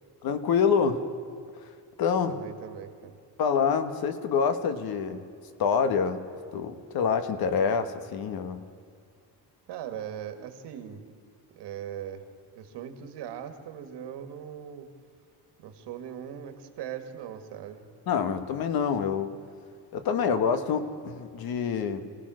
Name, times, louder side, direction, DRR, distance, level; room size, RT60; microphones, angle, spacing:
voice 1, 0.2-1.1 2.0-2.4 3.4-5.2 5.6-6.2 6.5-8.6 18.1-19.4 19.9-22.1, left 6 dB, 60° left, 9 dB, 1.5 m, -26 dB
voice 2, 2.3-3.2 9.7-11.0 11.5-12.2 12.6-14.9 15.6-17.9, right 9 dB, 85° right, 7 dB, 2.1 m, -40 dB
26.5 x 18.0 x 6.4 m, 2.3 s
cardioid pair, 175°, 40 cm